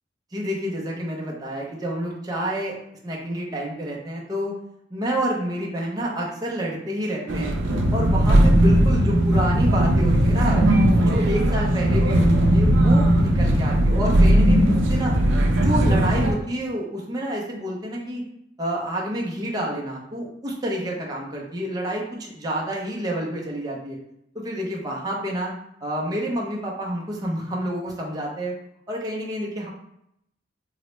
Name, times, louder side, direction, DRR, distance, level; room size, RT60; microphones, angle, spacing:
voice 1, 0.3-2.8 3.0-4.6 4.9-7.6 7.9-10.6 11.0-15.1 15.6-18.2 18.6-24.0 24.3-25.5 25.8-28.5 28.9-29.7, equal, 20° right, -3 dB, 0.6 m, -28 dB
sound 1, 7.3-16.3, right 1 dB, 75° right, 0.5 m, -18 dB
3.8 x 2.1 x 3.1 m, 0.77 s
head